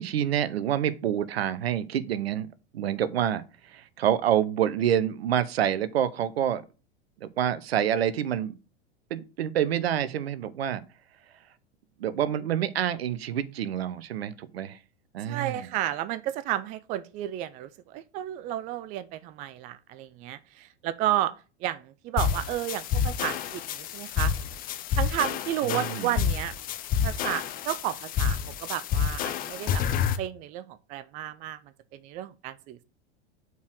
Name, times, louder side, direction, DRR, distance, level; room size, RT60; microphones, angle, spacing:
voice 1, 0.0-2.5 2.7-6.6 7.2-8.5 9.1-10.8 12.0-14.8 15.1-15.7 25.6-26.2, right 10 dB, 60° right, 0.8 m, -27 dB
voice 2, 15.3-21.3 21.6-24.3 25.0-26.5 27.0-29.8 30.2-31.6 31.9-32.8, right 13 dB, 25° right, 0.4 m, -32 dB
sound 1, 22.2-30.2, left 8 dB, 25° left, 0.7 m, -29 dB
5.5 x 4.6 x 6.3 m
figure-of-eight pair, 90°, 34 cm